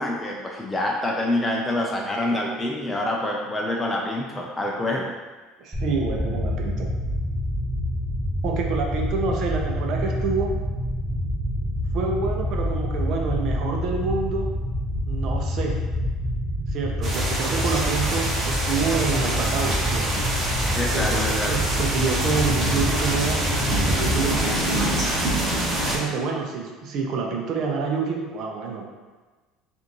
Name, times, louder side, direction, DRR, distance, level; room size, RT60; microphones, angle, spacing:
voice 1, 0.0-5.1 20.7-21.5, left 1 dB, 10° left, -2 dB, 0.5 m, -26 dB
voice 2, 1.8-2.4 5.6-6.9 8.4-10.5 11.9-14.5 15.1-15.8 16.7-20.3 20.9-23.4 23.9-24.6 25.9-28.9, right 5 dB, 60° right, 1 dB, 0.8 m, -27 dB
sound 1, 5.7-24.2, left 1 dB, 15° right, 1.2 m, -27 dB
sound 2, 17.0-26.0, right 1 dB, 40° right, 1.2 m, -25 dB
5.0 x 2.7 x 3.0 m, 1.3 s
supercardioid pair, 85°, 0 cm